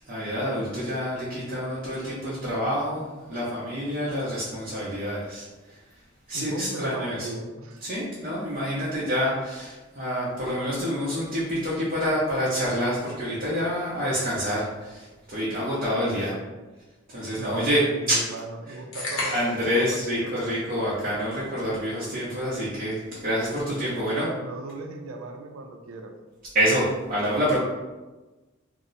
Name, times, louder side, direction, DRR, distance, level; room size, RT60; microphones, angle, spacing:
voice 1, 0.1-5.4 6.3-7.3 7.8-16.3 17.1-18.2 19.3-24.3 26.5-27.6, equal, 45° right, -7 dB, 0.7 m, -27 dB
voice 2, 6.3-7.9 8.8-9.0 16.0-16.4 17.4-20.4 23.8-26.1, right 2 dB, 80° right, 5 dB, 0.4 m, -37 dB
sound 1, 18.9-19.7, left 2 dB, 75° left, 0.9 m, -31 dB
2.8 x 2.0 x 3.9 m, 1.2 s
head